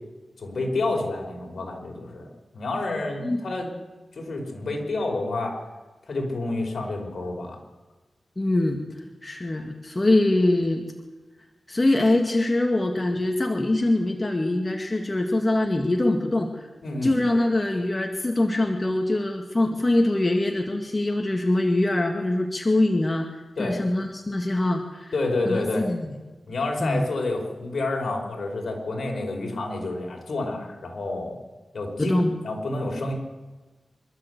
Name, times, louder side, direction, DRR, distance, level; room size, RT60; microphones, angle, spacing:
voice 1, 0.4-2.3 2.5-3.7 4.1-5.6 6.1-7.6 16.8-17.1 23.6-23.8 25.1-25.9 26.5-31.4 31.7-33.1, left 2 dB, 65° left, 1 dB, 5.3 m, -29 dB
voice 2, 8.4-10.9 11.7-16.7 17.0-23.3 23.6-25.1 25.5-26.1 26.8-27.1 32.0-32.4, left 2 dB, 30° left, 3 dB, 1.9 m, -23 dB
26.0 x 13.0 x 8.2 m, 1.2 s
cardioid pair, 65°, 0 cm